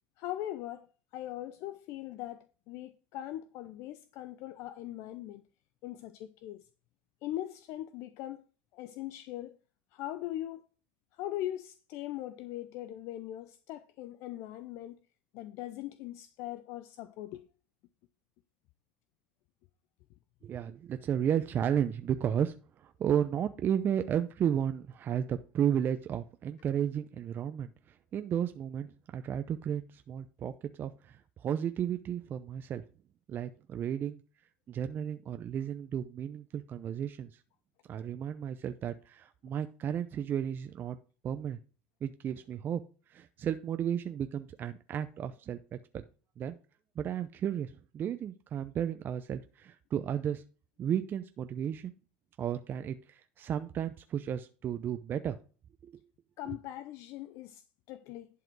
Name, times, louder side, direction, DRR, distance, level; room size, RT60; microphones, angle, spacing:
voice 1, 0.2-0.9 1.1-5.4 5.8-6.7 7.2-8.4 8.7-9.6 9.9-10.6 11.1-15.0 15.3-17.4 56.4-58.3, left 13 dB, 60° left, 0.6 m, -40 dB
voice 2, 20.4-27.7 28.1-30.5 30.8-32.8 33.3-34.2 34.7-37.4 37.9-41.0 41.2-41.6 42.0-42.8 43.1-46.0 46.4-46.6 47.0-50.4 50.8-51.9 52.4-55.4 55.8-55.9 56.5-56.6, right 9 dB, 40° right, 0.6 m, -33 dB
11.0 x 5.0 x 4.6 m
supercardioid pair, 95°, 5 cm